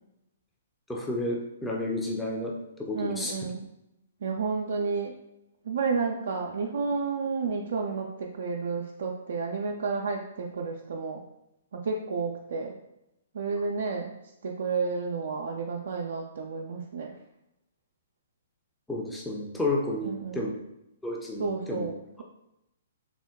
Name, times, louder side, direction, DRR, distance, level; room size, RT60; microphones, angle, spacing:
voice 1, 0.9-3.4 18.9-20.5 21.0-21.9, left 2 dB, 5° left, -2 dB, 0.5 m, -31 dB
voice 2, 2.9-3.6 4.2-5.1 5.7-11.2 11.7-12.7 13.3-14.2 14.4-17.2 20.0-20.4 21.4-22.2, right 4 dB, 65° right, 0 dB, 0.3 m, -31 dB
3.5 x 2.1 x 3.5 m, 0.88 s
figure-of-eight pair, 125°, 0 cm